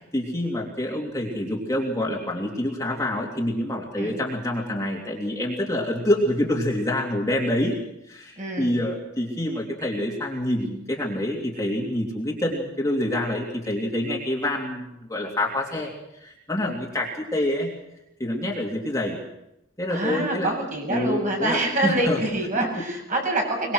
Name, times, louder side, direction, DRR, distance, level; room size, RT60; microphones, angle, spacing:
voice 1, 0.1-7.7 8.1-17.7 18.2-19.2 19.8-20.5 20.9-22.2 22.6-22.7 23.1-23.2, left 1 dB, 15° left, -2 dB, 3.1 m, -27 dB
voice 2, 8.4-8.7 19.9-23.7, right 1 dB, 40° right, 1 dB, 7.8 m, -26 dB
23.5 x 22.0 x 6.4 m, 0.85 s
head